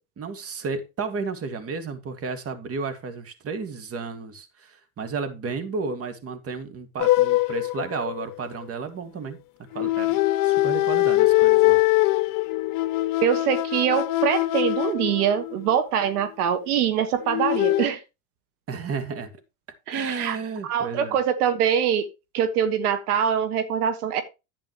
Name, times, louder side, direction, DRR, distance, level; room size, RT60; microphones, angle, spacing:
voice 1, 0.2-9.4 9.7-10.2 10.4-11.8 18.7-19.3 19.9-21.2, right 5 dB, 30° right, 2.1 m, -32 dB
sound 1, 7.0-8.6 9.7-15.8 17.2-17.9, left 18 dB, 45° left, 1.1 m, -22 dB
voice 2, 13.2-18.0 19.9-20.4 20.6-22.1 22.3-24.2, right 8 dB, 85° right, 1.6 m, -23 dB
11.0 x 8.4 x 3.1 m
supercardioid pair, 105°, 44 cm